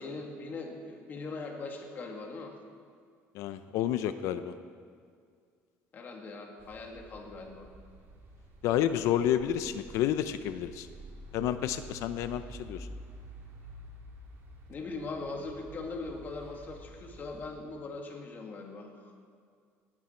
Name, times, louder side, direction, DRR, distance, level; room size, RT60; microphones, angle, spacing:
voice 1, 0.0-2.6 5.9-7.7 14.7-19.1, left 3 dB, 35° left, 2 dB, 2.0 m, -40 dB
voice 2, 3.3-4.5 8.6-10.9 11.3-12.9, left 11 dB, 70° left, 11 dB, 0.6 m, -30 dB
sound 1, 6.6-17.5, right 2 dB, 45° right, 2.7 m, -49 dB
18.0 x 12.5 x 4.4 m, 2.1 s
cardioid pair, 140°, 5 cm